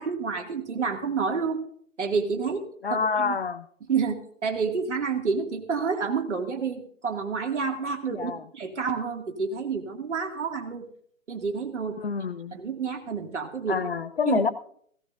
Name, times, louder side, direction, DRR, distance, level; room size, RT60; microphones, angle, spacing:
voice 1, 0.0-1.6 2.0-2.6 2.9-3.4 3.9-10.8 11.3-12.0 12.5-13.8 14.3-14.4, right 5 dB, 55° right, 2 dB, 2.4 m, -29 dB
voice 2, 2.8-3.7 8.1-8.4 12.0-12.6 13.7-14.5, left 5 dB, 45° left, 13 dB, 0.6 m, -27 dB
17.0 x 17.0 x 2.6 m, 0.62 s
figure-of-eight pair, 145°, 41 cm